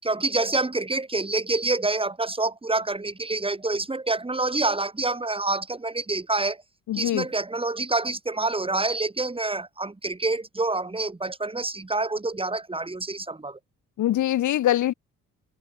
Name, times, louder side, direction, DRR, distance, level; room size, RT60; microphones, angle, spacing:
voice 1, 0.0-6.6 6.9-13.6, right 2 dB, 20° right, 6.1 m, -27 dB
voice 2, 6.9-7.3 14.0-14.9, left 13 dB, 75° left, 2.8 m, -23 dB
cardioid pair, 90°, 30 cm